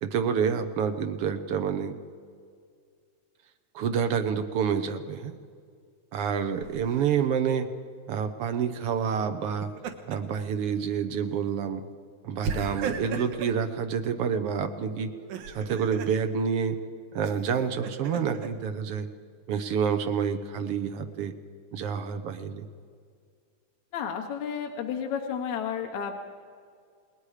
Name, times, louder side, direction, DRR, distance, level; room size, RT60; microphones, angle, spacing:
voice 1, 0.0-2.0 3.7-5.3 6.1-7.7 8.1-9.7 10.1-11.8 12.2-15.1 15.5-16.8 17.1-19.1 19.5-21.3 21.7-22.6, right 7 dB, 65° right, 8 dB, 1.6 m, -28 dB
Laughter, 6.6-7.1 9.4-10.4 10.8-11.0 12.4-13.6 15.1-16.2 17.2-18.5, right 5 dB, 85° right, 2.8 m, -36 dB
voice 2, 23.9-26.2, left 7 dB, 70° left, 2 dB, 2.4 m, -32 dB
29.0 x 20.0 x 5.0 m, 2.1 s
omnidirectional pair, 3.4 m